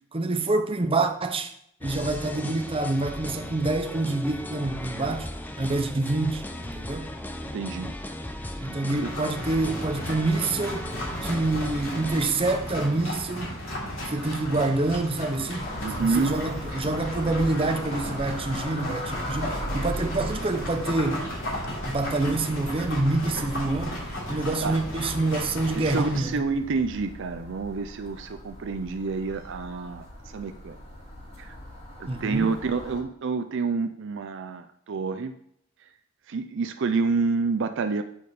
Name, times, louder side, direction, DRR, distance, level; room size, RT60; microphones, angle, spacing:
voice 1, 0.1-1.5 1.8-5.3 5.6-7.1 8.6-10.9 11.2-13.5 14.1-21.3 21.9-24.0 24.3-26.5 32.1-32.5, right 2 dB, 25° right, 0.7 m, -27 dB
sound 1, 1.8-12.2, left 1 dB, 10° left, 0.5 m, -37 dB
voice 2, 7.5-7.9 9.0-9.1 15.8-16.4 24.6-24.8 25.7-30.1 30.3-30.8 31.4-31.5 32.0-35.4 36.3-38.0, right 4 dB, 60° right, 0.5 m, -28 dB
sound 2, 8.9-26.2, left 1 dB, 70° left, 3.1 m, -35 dB
sound 3, 15.6-33.0, equal, 35° left, 2.8 m, -39 dB
8.7 x 5.0 x 4.2 m
head